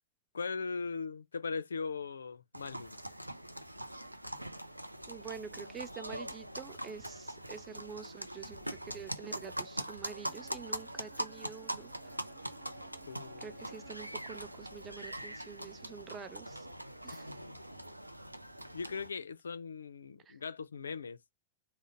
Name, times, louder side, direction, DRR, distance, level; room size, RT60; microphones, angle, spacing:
voice 1, 0.3-3.0 13.1-13.6 18.7-21.2, left 5 dB, 70° left, 0.4 m, -39 dB
sound 1, 2.5-19.1, right 1 dB, 85° right, 0.4 m, -43 dB
voice 2, 5.1-11.9 13.4-16.7 17.0-17.3 20.3-20.4, right 6 dB, 25° right, 0.6 m, -47 dB
Bowed string instrument, 10.1-14.3, right 11 dB, 50° right, 0.9 m, -61 dB
3.6 x 2.1 x 4.2 m
figure-of-eight pair, 90°, 0 cm